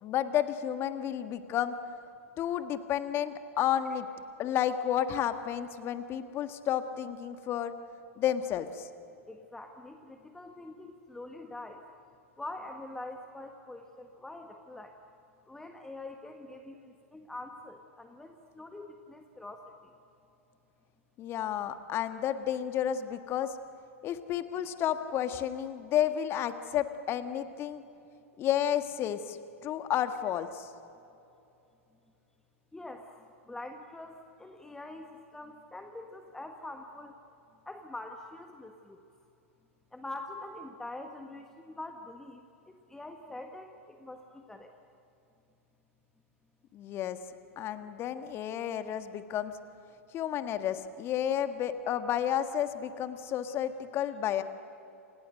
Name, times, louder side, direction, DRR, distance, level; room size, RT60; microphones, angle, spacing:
voice 1, 0.0-1.8 2.4-4.1 4.4-7.7 8.2-8.9 21.2-23.5 24.0-27.8 28.4-30.7 46.7-47.2 47.6-49.5 50.1-54.4, left 10 dB, 30° left, 10 dB, 1.6 m, -31 dB
voice 2, 9.3-11.8 12.4-15.0 15.5-19.7 32.7-37.2 37.7-39.0 39.9-42.4 42.9-44.7, left 2 dB, 5° left, 5 dB, 1.5 m, -44 dB
29.0 x 27.5 x 6.6 m, 2.8 s
figure-of-eight pair, 100°, 8 cm